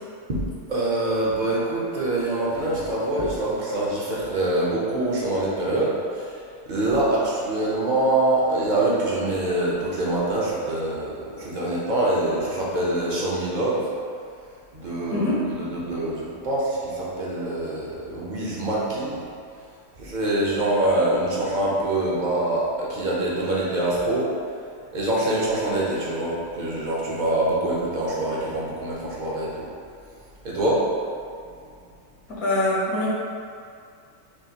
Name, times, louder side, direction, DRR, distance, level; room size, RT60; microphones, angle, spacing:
voice 1, 0.7-6.4 6.7-13.9 14.7-19.2 20.0-24.3 24.9-29.7 30.4-30.9, right 1 dB, 40° right, -6 dB, 0.7 m, -25 dB
voice 2, 32.3-33.1, left 1 dB, 70° left, -7 dB, 1.5 m, -23 dB
6.1 x 2.4 x 2.9 m, 2.3 s
omnidirectional pair, 1.6 m